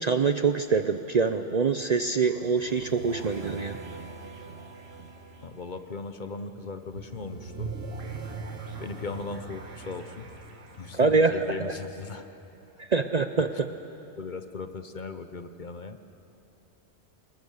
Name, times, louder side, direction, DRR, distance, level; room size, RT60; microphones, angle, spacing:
voice 1, 0.0-3.8 10.9-11.4 11.7-11.8 12.9-13.5, right 4 dB, 45° right, 9 dB, 0.6 m, -24 dB
sound 1, 1.8-12.4, right 4 dB, 60° right, 1.8 m, -42 dB
voice 2, 5.4-7.7 8.8-10.3 10.8-12.3 13.5-13.6 14.2-16.0, left 4 dB, 45° left, 9 dB, 0.9 m, -38 dB
25.5 x 20.5 x 6.6 m, 2.8 s
omnidirectional pair, 1.2 m